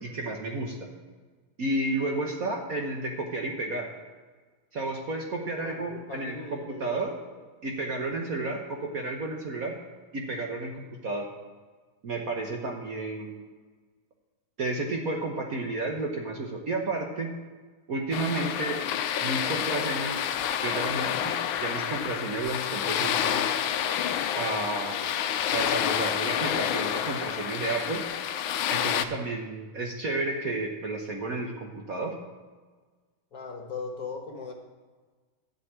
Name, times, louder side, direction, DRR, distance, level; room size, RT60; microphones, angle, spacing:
voice 1, 0.0-0.9 1.6-3.9 4.7-7.1 7.6-9.8 10.1-11.3 12.0-13.5 14.6-17.3 17.9-18.8 19.2-20.2 20.6-23.5 24.3-25.0 25.5-28.0 28.7-32.1, right 2 dB, 50° right, 1 dB, 1.3 m, -32 dB
voice 2, 5.6-7.1 8.0-8.3 22.8-23.1 33.3-34.5, left 4 dB, 50° left, 3 dB, 1.5 m, -39 dB
sound 1, 18.1-29.0, left 9 dB, 80° left, 1.4 m, -29 dB
12.0 x 5.3 x 8.6 m, 1.4 s
omnidirectional pair, 2.3 m